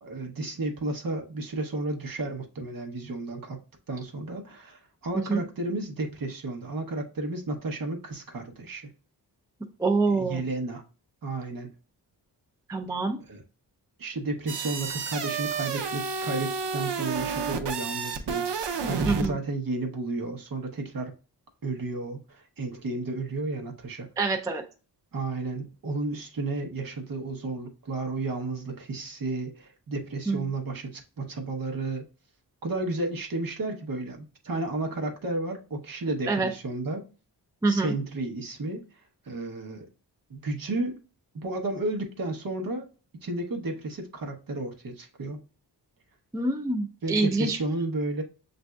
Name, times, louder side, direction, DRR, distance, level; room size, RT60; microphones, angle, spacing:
voice 1, 0.0-3.6 3.9-8.9 10.1-10.8 11.2-11.7 13.3-13.4 14.0-21.1 21.6-24.1 25.1-32.0 32.6-37.0 37.7-38.8 39.2-39.9 40.3-41.0 41.3-42.9 43.2-45.4 47.0-48.2, right 2 dB, 55° right, 0.9 m, -32 dB
voice 2, 9.8-10.4 12.7-13.2 19.1-19.4 24.2-24.6 30.3-30.4 36.3-36.5 37.6-37.9 46.3-47.6, right 3 dB, 10° right, 0.3 m, -25 dB
sound 1, 14.5-19.3, right 5 dB, 75° right, 0.7 m, -30 dB
7.1 x 2.6 x 2.2 m
wide cardioid pair, 165°, 42 cm